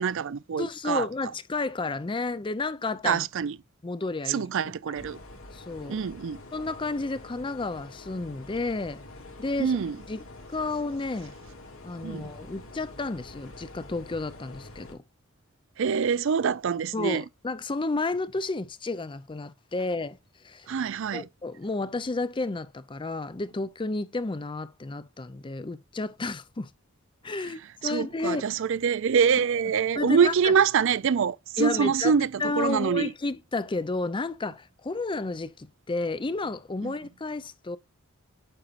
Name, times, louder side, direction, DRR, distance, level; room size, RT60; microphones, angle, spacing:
voice 1, 0.0-1.1 3.0-3.6 4.3-5.2 5.9-6.4 9.6-10.0 12.0-12.3 15.8-17.2 20.7-21.3 27.8-33.1 36.8-36.9, right 6 dB, 65° right, 0.4 m, -25 dB
voice 2, 0.6-3.2 3.8-4.5 5.5-5.9 6.5-9.0 9.4-9.8 10.1-10.2 10.5-11.3 11.8-15.0 16.9-20.2 20.4-20.7 21.1-26.7 27.2-28.4 30.0-30.5 31.6-32.1 32.4-37.8, left 3 dB, 25° left, 0.5 m, -31 dB
sound 1, 4.9-14.9, left 2 dB, 75° left, 2.8 m, -46 dB
8.9 x 5.8 x 2.5 m
head